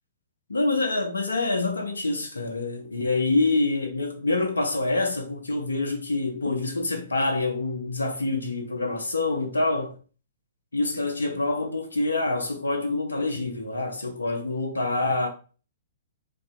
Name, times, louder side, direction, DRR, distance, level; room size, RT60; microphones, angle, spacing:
voice 1, 0.5-9.9 10.7-15.3, left 2 dB, 80° left, 0.5 m, -26 dB
3.2 x 2.6 x 2.3 m
figure-of-eight pair, 115°, 0 cm